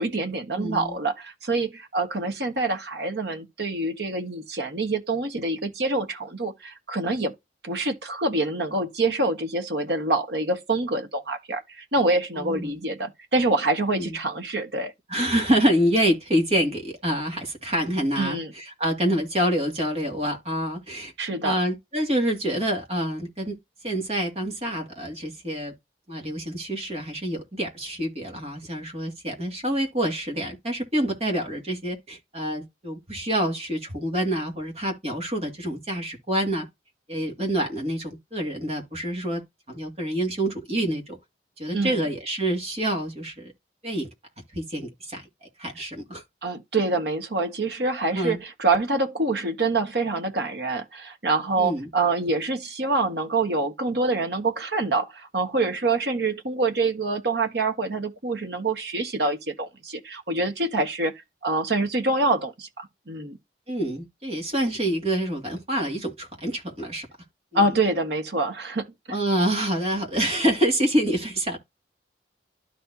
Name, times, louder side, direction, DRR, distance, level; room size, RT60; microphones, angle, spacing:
voice 1, 0.0-7.3 7.6-14.9 18.2-18.5 21.2-21.6 41.7-42.0 46.4-61.1 61.4-63.4 67.5-68.9, right 2 dB, 70° right, 1.5 m, -26 dB
voice 2, 0.6-1.0 12.4-12.8 13.9-14.2 15.1-21.1 21.4-23.6 23.8-25.7 26.1-36.7 37.1-39.4 39.7-41.2 41.6-43.5 43.8-44.1 44.5-45.3 45.6-46.2 48.1-48.4 51.6-51.9 63.7-67.1 67.5-67.6 69.1-71.6, right 1 dB, 35° right, 2.3 m, -27 dB
12.5 x 4.4 x 2.8 m
head